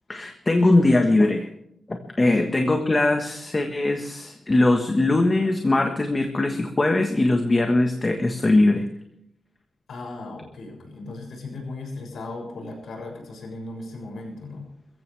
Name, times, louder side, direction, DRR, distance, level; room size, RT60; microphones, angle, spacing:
voice 1, 0.1-1.5 1.9-8.8, left 2 dB, 20° left, 4 dB, 1.4 m, -21 dB
voice 2, 2.2-2.7 9.9-14.7, left 2 dB, 70° left, 1 dB, 7.0 m, -37 dB
22.5 x 15.0 x 3.4 m, 0.76 s
wide cardioid pair, 165°, 0 cm